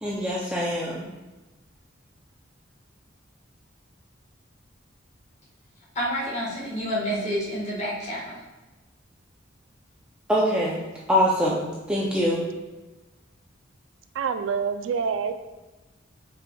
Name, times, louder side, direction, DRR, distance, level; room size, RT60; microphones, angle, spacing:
voice 1, 0.0-1.1 10.3-10.8 11.1-12.4, equal, 5° right, -5 dB, 0.4 m, -24 dB
voice 2, 5.9-8.4, equal, 35° left, -6 dB, 1.3 m, -29 dB
voice 3, 14.1-15.3, right 6 dB, 85° right, 9 dB, 0.3 m, -26 dB
5.0 x 3.3 x 2.2 m, 1.1 s
head